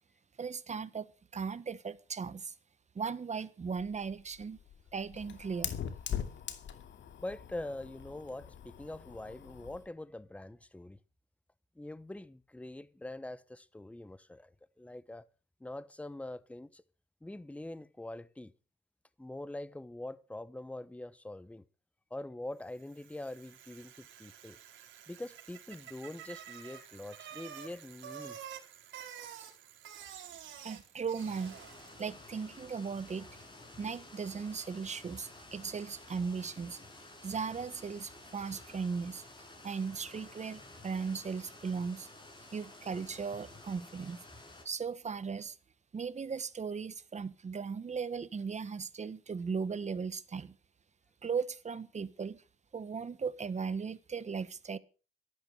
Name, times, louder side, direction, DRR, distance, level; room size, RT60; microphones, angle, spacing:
voice 1, 0.4-2.5 2.9-4.6 4.9-5.7 30.6-31.6 32.0-33.4 33.8-36.8 37.2-39.2 39.6-42.1 42.5-44.2 44.6-45.6 45.9-50.6 51.2-52.4 52.7-54.8, right 5 dB, 35° right, 1.4 m, -37 dB
Fire, 3.7-9.9, left 9 dB, 70° left, 2.6 m, -42 dB
voice 2, 7.2-11.0 11.8-14.5 14.8-15.3 15.6-16.8 17.2-18.5 19.2-21.6 22.1-24.6 25.1-28.4, left 1 dB, 5° left, 1.0 m, -44 dB
Bicycle, 22.7-32.1, right 9 dB, 75° right, 4.6 m, -49 dB
sound 1, 31.2-44.6, left 2 dB, 25° left, 7.7 m, -53 dB
13.0 x 12.5 x 6.5 m
cardioid pair, 90°, 20 cm